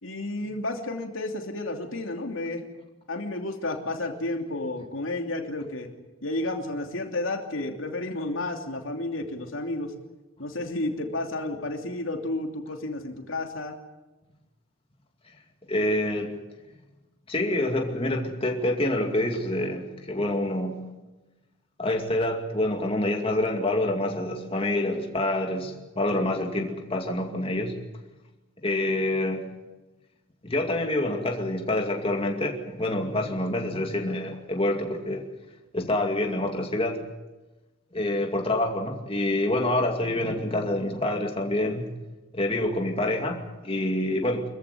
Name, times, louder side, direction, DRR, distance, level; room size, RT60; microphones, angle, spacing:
voice 1, 0.0-2.6 3.1-5.9 6.2-9.9 10.4-13.8, left 2 dB, 80° left, 3 dB, 2.9 m, -31 dB
voice 2, 15.7-16.3 17.3-20.8 21.8-27.7 28.6-29.4 30.4-35.2 35.7-37.0 37.9-41.9 42.3-44.4, left 1 dB, 25° left, 2 dB, 2.4 m, -27 dB
25.0 x 15.0 x 9.7 m, 1.1 s
head